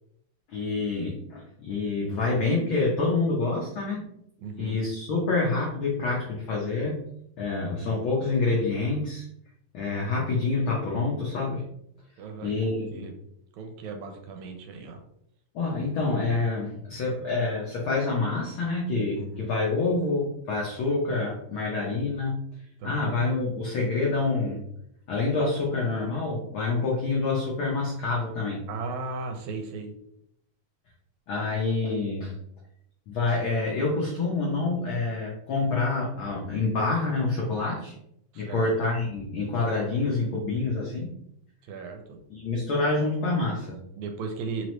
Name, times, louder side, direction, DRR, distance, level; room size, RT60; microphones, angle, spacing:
voice 1, 0.5-4.0 4.6-7.0 7.4-9.3 9.7-11.6 12.4-13.1 15.5-22.4 22.8-24.7 25.1-28.6 31.3-32.3 33.1-38.0 38.3-41.1 42.3-43.8, left 3 dB, 90° left, -3 dB, 1.1 m, -27 dB
voice 2, 4.4-4.8 12.2-13.1 13.5-15.0 19.1-19.5 22.8-23.1 28.7-29.9 38.3-38.7 41.6-42.2 44.0-44.7, right 4 dB, 80° right, 4 dB, 1.9 m, -36 dB
4.5 x 3.0 x 3.1 m, 0.74 s
omnidirectional pair, 3.4 m